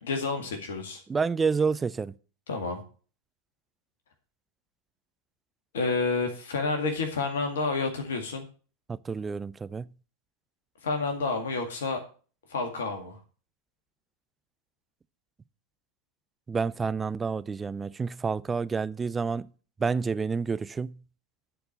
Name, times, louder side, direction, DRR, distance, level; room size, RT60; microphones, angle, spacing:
voice 1, 0.0-1.0 2.5-2.8 5.7-8.4 10.8-12.0 12.5-13.2, left 3 dB, 60° left, 2.0 m, -29 dB
voice 2, 1.1-2.1 8.9-9.9 16.5-19.5 19.8-21.0, right 5 dB, 15° right, 0.4 m, -29 dB
11.5 x 4.6 x 6.6 m
figure-of-eight pair, 90°, 0 cm